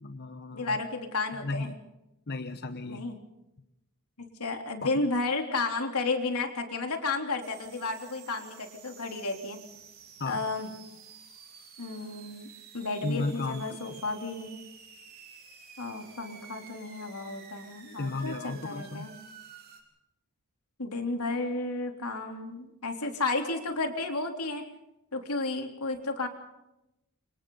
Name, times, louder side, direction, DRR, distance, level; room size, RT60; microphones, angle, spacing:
voice 1, 0.0-0.8 1.4-1.8 2.3-3.1 4.8-4.9 10.2-10.4 13.0-13.8 18.0-19.1, left 3 dB, 50° left, 8 dB, 1.1 m, -34 dB
voice 2, 0.5-1.8 2.9-3.2 4.2-9.6 10.3-10.7 11.8-12.5 12.7-14.6 15.8-19.2 20.8-24.6 25.1-26.3, left 3 dB, 85° left, 4 dB, 3.5 m, -32 dB
sound 1, 7.4-19.8, right 7 dB, 45° right, 4.2 m, -51 dB
29.5 x 26.0 x 4.0 m, 0.91 s
head